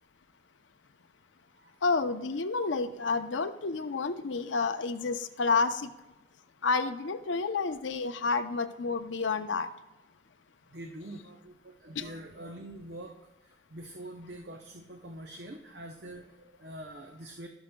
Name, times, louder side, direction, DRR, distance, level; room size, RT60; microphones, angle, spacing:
voice 1, 1.8-5.9 6.6-9.7 12.0-12.1, left 4 dB, 90° left, 9 dB, 0.6 m, -30 dB
voice 2, 10.7-13.1 13.4-17.5, right 1 dB, 60° right, 2 dB, 0.7 m, -45 dB
16.5 x 6.2 x 2.2 m, 1.0 s
head